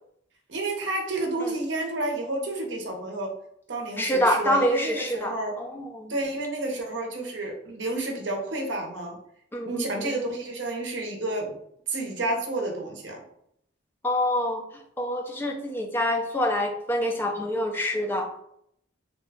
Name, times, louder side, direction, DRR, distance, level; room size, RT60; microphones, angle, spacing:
voice 1, 0.5-3.4 3.7-5.6 6.1-9.2 9.6-11.6 11.9-13.2, right 2 dB, 65° right, 2 dB, 0.7 m, -30 dB
voice 2, 4.0-6.1 9.5-10.1 14.0-14.6 15.0-18.3, left 1 dB, 10° left, 3 dB, 0.3 m, -26 dB
2.6 x 2.2 x 3.5 m, 0.71 s
head